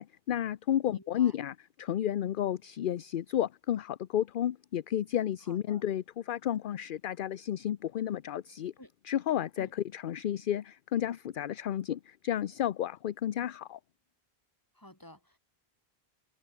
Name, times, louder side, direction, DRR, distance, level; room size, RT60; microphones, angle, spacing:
voice 1, 0.0-8.7 9.1-13.8, left 11 dB, 60° left, 0.7 m, -32 dB
voice 2, 0.9-1.4 5.5-5.8 8.8-8.9 9.6-9.7 14.7-15.4, left 1 dB, 20° left, 4.0 m, -53 dB
omnidirectional pair, 1.1 m